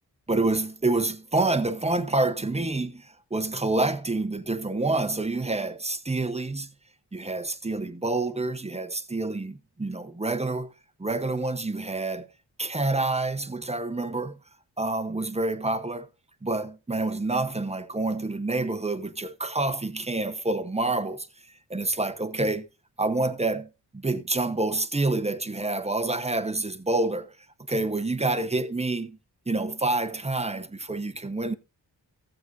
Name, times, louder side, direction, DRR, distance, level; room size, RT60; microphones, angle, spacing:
voice 1, 0.3-6.7 7.1-10.7 11.0-12.3 12.6-14.4 14.8-16.1 16.4-21.3 21.7-22.7 23.0-23.7 23.9-27.3 27.7-29.2 29.5-31.5, right 2 dB, 15° right, 1.0 m, -27 dB
14.5 x 7.8 x 2.6 m
cardioid pair, 50°, 44 cm